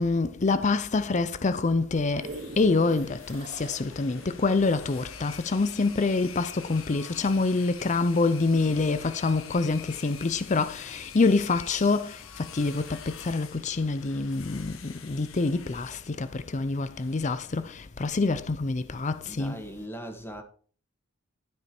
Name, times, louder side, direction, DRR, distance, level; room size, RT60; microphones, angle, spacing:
voice 1, 0.0-2.3 2.6-19.6, left 3 dB, 35° left, 0.5 m, -26 dB
sound 1, 1.8-6.5 7.0-7.1, right 2 dB, 55° right, 2.8 m, -44 dB
sound 2, 1.9-17.9, left 8 dB, 75° left, 1.0 m, -47 dB
voice 2, 19.2-20.4, equal, 10° left, 1.6 m, -39 dB
13.0 x 5.3 x 4.4 m
head